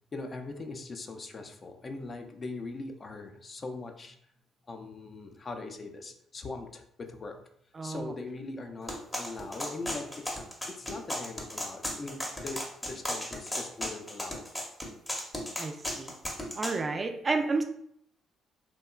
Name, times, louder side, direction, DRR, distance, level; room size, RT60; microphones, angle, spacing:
voice 1, 0.1-4.2 4.7-7.4 7.8-10.4 10.8-14.4, left 3 dB, 40° left, 4 dB, 0.4 m, -41 dB
voice 2, 7.7-8.1 15.6-16.1 16.6-17.6, right 3 dB, 35° right, 5 dB, 0.3 m, -31 dB
sound 1, 8.9-16.8, left 1 dB, 15° left, 0.7 m, -35 dB
2.8 x 2.2 x 2.2 m, 0.69 s
hypercardioid pair, 60°, 0 cm